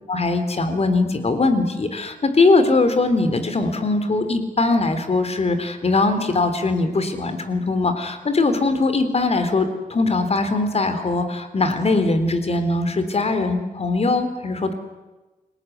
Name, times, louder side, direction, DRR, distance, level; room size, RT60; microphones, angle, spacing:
voice 1, 0.1-14.7, left 3 dB, 45° left, 9 dB, 3.5 m, -21 dB
29.0 x 19.0 x 9.4 m, 1.1 s
wide cardioid pair, 135°, 14 cm